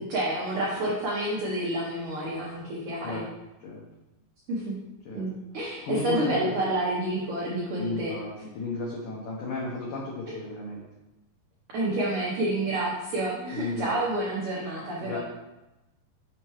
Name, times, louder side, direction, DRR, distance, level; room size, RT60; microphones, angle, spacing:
voice 1, 0.0-3.2 4.5-4.8 5.1-8.5 10.3-10.4 11.7-15.2, right 1 dB, 85° right, -4 dB, 1.6 m, -29 dB
voice 2, 5.6-6.4 7.8-10.8 13.5-14.0 15.0-15.2, left 2 dB, 85° left, -4 dB, 1.7 m, -34 dB
6.9 x 5.5 x 3.1 m, 0.99 s
omnidirectional pair, 4.9 m